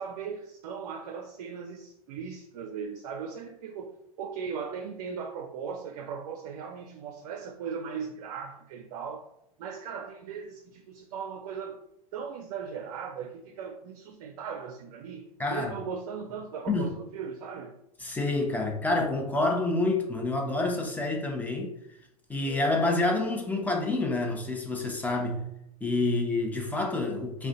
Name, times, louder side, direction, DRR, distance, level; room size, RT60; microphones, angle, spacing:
voice 1, 0.0-9.3 9.6-11.8 12.1-17.7, right 6 dB, 65° right, 0.4 m, -38 dB
voice 2, 15.4-15.7 16.7-16.9 18.0-21.7 22.3-25.4 25.8-27.5, left 2 dB, 10° left, 0.6 m, -28 dB
2.4 x 2.2 x 3.8 m
hypercardioid pair, 95°, 19 cm